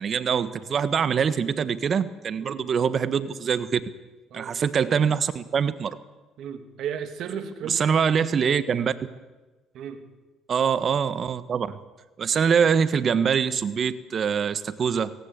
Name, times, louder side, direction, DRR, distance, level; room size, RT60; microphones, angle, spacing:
voice 1, 0.0-3.8 4.3-5.9 7.7-8.9 10.5-11.8 12.2-15.1, right 7 dB, 50° right, 13 dB, 1.4 m, -24 dB
voice 2, 6.4-7.9 9.7-10.0, right 8 dB, 65° right, 8 dB, 2.6 m, -34 dB
19.0 x 18.0 x 8.4 m, 1.2 s
supercardioid pair, 80°, 0 cm